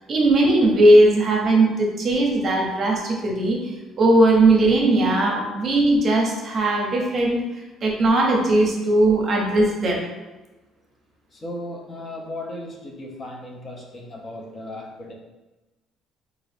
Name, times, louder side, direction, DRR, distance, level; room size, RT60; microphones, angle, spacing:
voice 1, 0.1-7.4 7.8-10.0, right 1 dB, 40° right, 0 dB, 0.7 m, -18 dB
voice 2, 11.3-15.1, left 1 dB, 25° left, 0 dB, 0.6 m, -36 dB
3.7 x 2.4 x 3.4 m, 1.1 s
cardioid pair, 135°, 0 cm